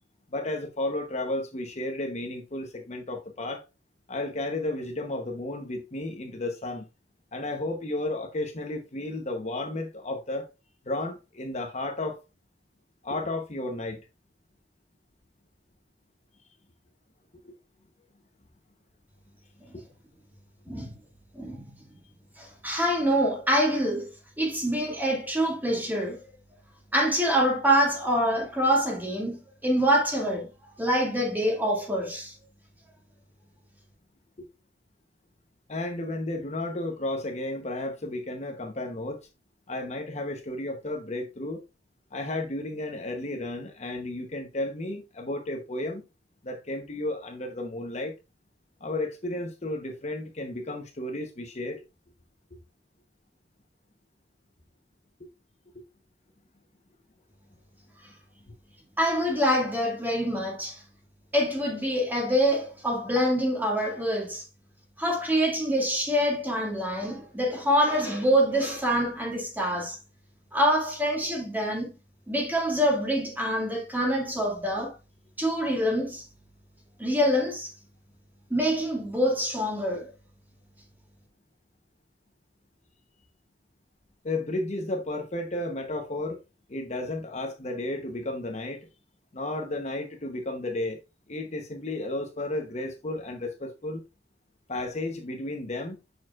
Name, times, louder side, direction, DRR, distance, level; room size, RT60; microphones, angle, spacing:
voice 1, 0.3-3.6 4.1-6.9 7.3-10.5 10.8-12.2 13.0-14.0 17.4-17.5 19.7-19.8 34.4-34.5 35.7-39.3 39.7-41.6 42.1-46.0 46.4-48.2 48.8-51.8 55.2-55.3 55.7-55.8 84.2-86.4 86.7-88.9 89.3-91.0 91.3-94.0 94.7-96.0, left 2 dB, 40° left, 0.9 m, -33 dB
voice 2, 21.3-21.7 22.4-24.1 24.4-26.2 26.9-30.5 30.8-32.3 59.0-60.8 61.3-64.4 65.0-70.0 70.5-71.9 72.3-74.9 75.4-76.3 77.0-77.7 78.5-80.1, equal, 10° right, 2.0 m, -25 dB
6.9 x 6.4 x 2.4 m
head